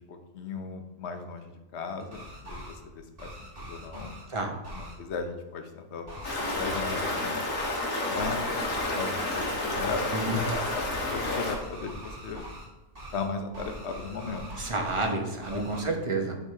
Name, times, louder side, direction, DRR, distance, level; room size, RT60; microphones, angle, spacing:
voice 1, 0.0-4.1 4.7-7.4 8.1-8.4 8.9-12.4 13.1-14.5 15.5-15.7, left 4 dB, 60° left, 6 dB, 1.1 m, -37 dB
sound 1, 2.0-2.7 3.2-4.2 4.6-4.9 6.1-6.4 7.5-7.8 8.2-8.5 8.8-10.0 10.5-12.6 12.9-13.2 13.5-15.1 15.4-15.8, right 1 dB, 45° right, 2.6 m, -42 dB
Stream, 6.2-11.5, left 2 dB, 80° left, 2.1 m, -30 dB
voice 2, 14.6-16.4, right 2 dB, 25° right, 3 dB, 1.0 m, -30 dB
10.0 x 4.9 x 3.6 m, 1.1 s
omnidirectional pair, 1.4 m